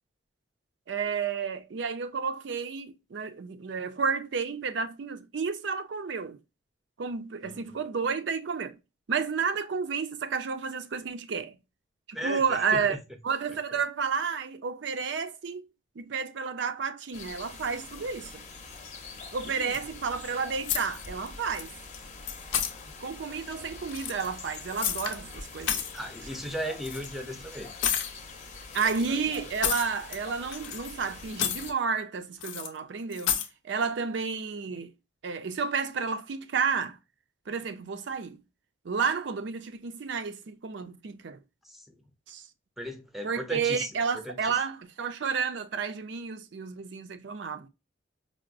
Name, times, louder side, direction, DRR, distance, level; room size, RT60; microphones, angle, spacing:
voice 1, 0.9-6.4 7.0-8.8 9.1-11.6 12.1-13.0 13.2-15.6 16.0-18.4 19.3-21.7 23.0-25.8 28.7-33.4 33.6-34.9 35.2-37.0 37.5-38.4 38.8-41.4 42.3-42.4 43.2-47.7, right 5 dB, 70° right, 0.5 m, -31 dB
voice 2, 7.4-7.8 12.1-13.0 19.4-19.8 22.7-22.9 25.9-27.7 28.8-29.2 41.6-41.8 42.8-43.9 44.1-44.4, equal, ahead, 0.5 m, -37 dB
sound 1, 17.1-31.7, left 4 dB, 40° left, 0.7 m, -45 dB
sound 2, 20.6-21.3 21.5-22.0 22.3-22.7 23.8-25.2 25.5-26.0 26.8-27.1 27.8-28.1 28.7-30.2 30.5-31.0 31.3-31.7 32.4-32.7 33.1-33.5, left 9 dB, 80° left, 0.5 m, -31 dB
4.7 x 2.0 x 2.4 m
head